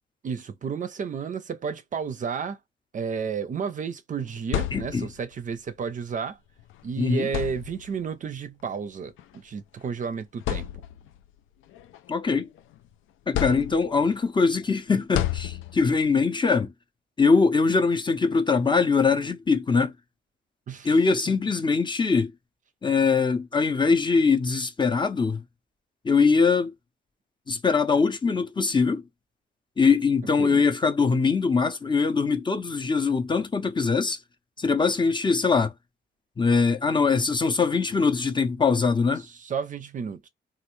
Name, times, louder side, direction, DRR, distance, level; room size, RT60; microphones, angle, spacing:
voice 1, 0.2-2.6 2.9-6.4 6.8-10.7 20.7-21.0 30.4-30.6 39.2-40.3, right 6 dB, 40° right, 0.5 m, -32 dB
sound 1, 4.2-5.3 6.6-6.7 7.2-8.1 9.2-9.4 9.9-10.0 10.4-11.2 11.7-12.8 13.3-14.1 15.1-16.0, left 12 dB, 80° left, 0.4 m, -31 dB
voice 2, 4.7-5.1 7.0-7.3 12.1-12.5 13.3-16.7 17.2-19.9 20.8-22.3 22.8-25.4 26.0-26.7 27.5-29.0 29.8-34.2 34.6-35.7 36.4-39.2, left 4 dB, 25° left, 0.6 m, -22 dB
3.2 x 2.4 x 3.1 m
cardioid pair, 90°, 20 cm